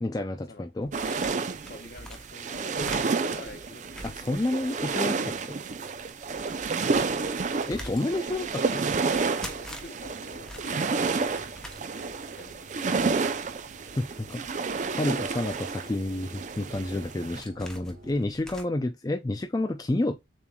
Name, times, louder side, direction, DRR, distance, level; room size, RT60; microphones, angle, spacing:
voice 1, 0.0-0.9 4.0-5.6 7.6-8.9 14.0-20.2, left 1 dB, 20° left, 0.4 m, -30 dB
sound 1, 0.8-5.0 5.3-5.4 5.8-18.6, equal, 5° left, 0.8 m, -46 dB
sound 2, 0.9-17.4, right 4 dB, 40° right, 0.4 m, -30 dB
voice 2, 1.7-4.2 7.8-8.2 9.5-12.7, left 2 dB, 55° left, 1.0 m, -48 dB
sound 3, 10.0-18.1, right 2 dB, 80° right, 2.2 m, -52 dB
6.9 x 3.1 x 2.3 m
head